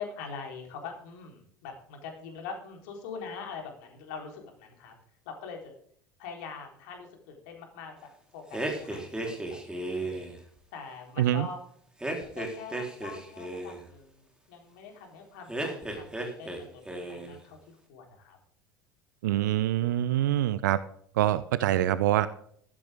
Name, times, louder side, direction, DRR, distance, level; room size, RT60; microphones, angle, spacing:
voice 1, 0.0-4.9 5.3-5.8 6.2-10.3 10.7-11.6 12.3-18.4, left 5 dB, 60° left, 3 dB, 3.9 m, -43 dB
sound 1, 8.5-10.4 12.0-13.8 15.5-16.6 16.8-17.4, right 2 dB, 5° right, 4.0 m, -34 dB
voice 2, 19.2-20.8 21.2-22.3, right 13 dB, 65° right, 16 dB, 0.6 m, -25 dB
14.5 x 12.5 x 3.7 m, 0.63 s
figure-of-eight pair, 70°, 11 cm